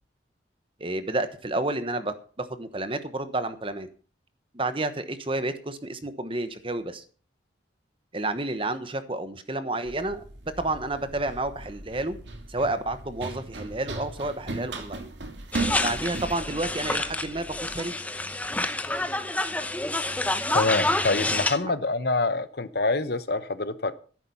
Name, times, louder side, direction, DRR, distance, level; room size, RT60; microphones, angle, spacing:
voice 1, 0.8-3.9 4.5-7.0 8.1-10.2 10.6-12.2 12.5-15.1 15.8-17.5 17.7-18.0 21.6-21.8, right 2 dB, 30° right, 11 dB, 1.2 m, -30 dB
Run, 9.9-17.8, right 3 dB, 75° right, 2.5 m, -37 dB
sound 1, 15.5-21.6, left 2 dB, 10° left, 0.9 m, -28 dB
voice 2, 20.5-23.9, left 3 dB, 55° left, 13 dB, 1.0 m, -26 dB
13.5 x 11.0 x 5.6 m, 0.40 s
head